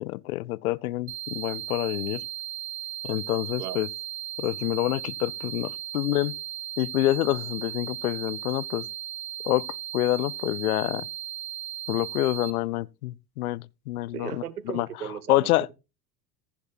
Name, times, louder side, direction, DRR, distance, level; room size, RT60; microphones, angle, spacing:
voice 1, 0.0-2.2 3.0-3.9 4.4-6.4 6.8-8.9 9.4-9.7 9.9-11.1 11.9-14.3 14.7-14.9 15.3-15.7, left 17 dB, 75° left, 0.6 m, -27 dB
sound 1, 1.1-12.5, right 12 dB, 55° right, 3.5 m, -36 dB
voice 2, 14.1-15.7, right 9 dB, 80° right, 1.1 m, -36 dB
14.5 x 10.5 x 2.5 m
figure-of-eight pair, 70°, 45 cm